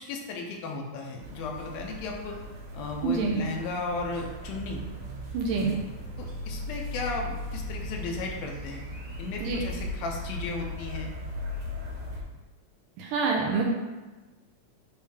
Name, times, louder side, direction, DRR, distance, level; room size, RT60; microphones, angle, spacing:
voice 1, 0.0-2.4 2.7-4.8 6.2-8.8 9.2-11.1, left 3 dB, 75° left, 1 dB, 2.6 m, -35 dB
sound 1, 1.2-12.2, left 1 dB, 50° right, 2.5 m, -38 dB
voice 2, 3.0-3.4 5.3-5.7 9.4-9.6 13.0-13.7, right 4 dB, 75° right, -1 dB, 2.2 m, -26 dB
9.2 x 3.3 x 4.9 m, 1.2 s
omnidirectional pair, 4.3 m